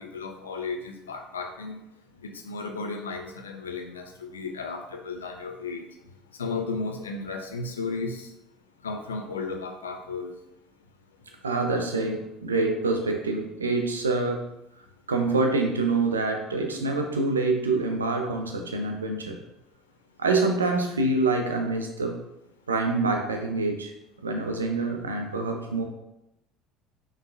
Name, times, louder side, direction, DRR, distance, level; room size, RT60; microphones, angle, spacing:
voice 1, 0.0-1.8 2.2-5.8 6.4-8.3 8.8-10.3, left 4 dB, 75° left, 4 dB, 0.5 m, -34 dB
voice 2, 11.4-14.5 15.1-19.4 20.2-22.2 22.7-23.9 24.2-25.8, right 3 dB, 80° right, 3 dB, 0.5 m, -26 dB
5.4 x 3.1 x 2.5 m, 0.88 s
figure-of-eight pair, 60°, 0 cm